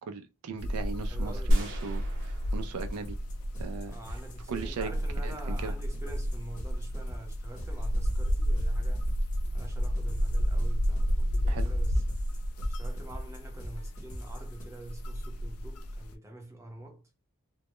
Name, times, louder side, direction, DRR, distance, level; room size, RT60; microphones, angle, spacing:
voice 1, 0.0-3.2 3.6-3.9 4.5-4.9 5.2-5.7 11.5-11.7, right 5 dB, 85° right, 0.4 m, -38 dB
sound 1, 0.6-16.2, equal, 75° left, 0.4 m, -31 dB
voice 2, 1.0-1.6 3.8-9.1 9.5-12.0 12.3-17.0, right 1 dB, 15° right, 0.6 m, -47 dB
sound 2, 1.5-3.8, equal, 60° right, 0.8 m, -30 dB
sound 3, 2.8-14.6, equal, 35° left, 0.8 m, -44 dB
2.2 x 2.0 x 2.9 m
head